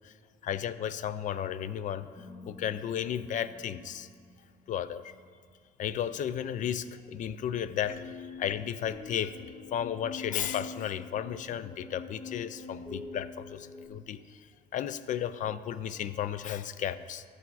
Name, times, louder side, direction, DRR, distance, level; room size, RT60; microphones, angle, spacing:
voice 1, 0.4-2.1 2.5-4.1 4.7-5.0 5.8-14.2 14.7-17.2, left 9 dB, 50° left, 14 dB, 0.4 m, -34 dB
sound 1, 2.1-5.3 7.8-13.9, left 4 dB, 20° left, 0.8 m, -46 dB
12.5 x 4.4 x 4.1 m, 2.2 s
cardioid pair, 110°, 17 cm